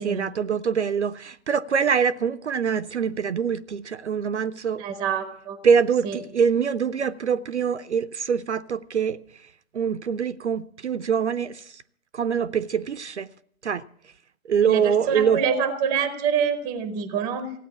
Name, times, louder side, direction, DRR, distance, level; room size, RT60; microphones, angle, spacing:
voice 1, 0.0-4.8 5.6-9.2 9.7-11.8 12.1-13.3 13.6-13.8 14.5-15.4, right 7 dB, 55° right, 0.6 m, -24 dB
voice 2, 4.8-5.6 6.0-6.2 14.6-17.5, right 7 dB, 10° right, 0.7 m, -26 dB
16.0 x 9.3 x 7.0 m
figure-of-eight pair, 135°, 43 cm